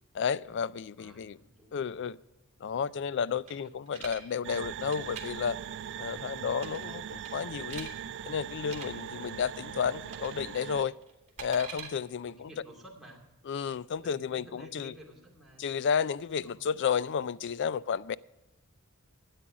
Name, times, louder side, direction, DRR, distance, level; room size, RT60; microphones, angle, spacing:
voice 1, 0.1-1.4 1.7-2.1 2.6-5.6 6.0-7.9 8.2-11.0 11.4-12.5 13.5-14.9 15.6-18.1, left 7 dB, 55° left, 0.3 m, -32 dB
voice 2, 1.0-2.1 3.0-3.7 6.1-7.0 8.8-9.2 11.4-11.7 12.2-13.2 14.0-15.8 16.3-16.6, right 1 dB, ahead, 2.5 m, -54 dB
sound 1, 3.5-4.2 4.8-5.2 6.6-6.9 7.2-7.9 8.6-8.9 10.1-10.4 10.7-11.9, right 6 dB, 30° right, 2.2 m, -43 dB
sound 2, 4.4-10.8, right 9 dB, 55° right, 0.3 m, -40 dB
12.5 x 9.0 x 4.8 m
head